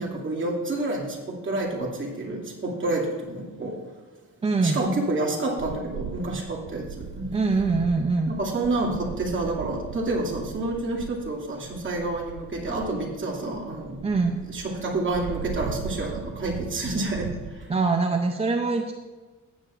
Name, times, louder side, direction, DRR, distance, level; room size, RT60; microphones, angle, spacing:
voice 1, 0.0-3.7 4.6-6.8 7.1-7.3 8.3-14.0 14.5-17.7, right 2 dB, 40° right, -3 dB, 2.3 m, -29 dB
voice 2, 4.4-4.8 7.3-8.4 14.0-14.4 17.7-18.9, right 3 dB, 20° right, 4 dB, 0.4 m, -23 dB
sound 1, 5.6-17.7, right 7 dB, 80° right, 0.6 m, -39 dB
15.0 x 8.7 x 2.5 m, 1.4 s
cardioid pair, 125°, 32 cm